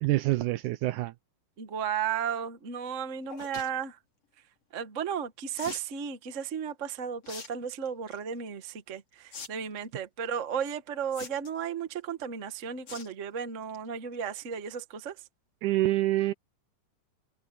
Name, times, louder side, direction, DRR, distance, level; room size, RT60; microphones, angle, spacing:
voice 1, 0.0-1.1 15.6-16.3, right 17 dB, 75° right, 1.9 m, -26 dB
voice 2, 1.6-4.0 4.7-15.2, right 7 dB, 55° right, 0.8 m, -34 dB
sound 1, 3.3-3.7 5.6-5.9 7.2-7.5 7.9-8.2 9.3-9.5 9.8-9.9 11.1-11.6 12.9-13.1 13.5-13.8 14.1-14.2 14.4-14.5, left 5 dB, 45° left, 4.2 m, -42 dB
omnidirectional pair, 3.9 m